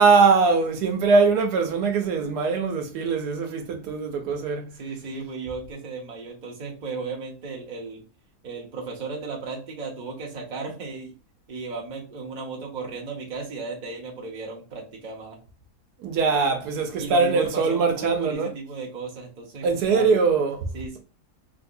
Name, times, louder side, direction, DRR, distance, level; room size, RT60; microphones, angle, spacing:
voice 1, 0.0-4.7 16.0-18.5 19.6-20.7, right 4 dB, 85° right, 1.3 m, -21 dB
voice 2, 4.8-8.0 8.4-11.1 11.5-15.4 17.0-20.1 20.7-21.0, right 4 dB, 35° right, 0.8 m, -35 dB
3.6 x 2.6 x 2.5 m
omnidirectional pair, 1.7 m